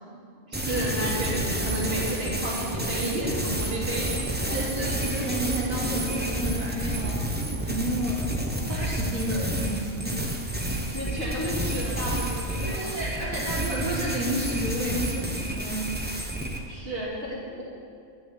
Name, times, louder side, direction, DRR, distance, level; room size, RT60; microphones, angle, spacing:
sound 1, 0.5-16.6, right 1 dB, 10° right, 0.6 m, -30 dB
voice 1, 0.5-4.5 10.8-12.9 16.7-17.6, right 1 dB, 40° right, -6 dB, 2.9 m, -32 dB
voice 2, 4.5-7.3 7.6-8.3 8.7-10.2 12.6-16.0, right 1 dB, 70° right, -7 dB, 2.1 m, -31 dB
11.5 x 6.2 x 8.2 m, 2.3 s
omnidirectional pair, 1.5 m